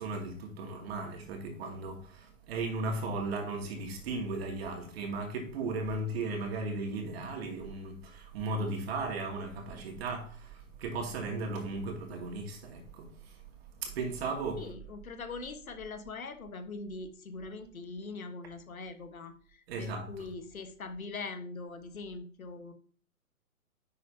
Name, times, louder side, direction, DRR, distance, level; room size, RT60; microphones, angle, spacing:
voice 1, 0.0-13.4 13.8-14.7 19.7-20.3, right 3 dB, 45° right, 2.5 m, -36 dB
voice 2, 14.6-22.7, left 3 dB, 70° left, 1.4 m, -42 dB
10.5 x 6.8 x 2.8 m
figure-of-eight pair, 125°, 43 cm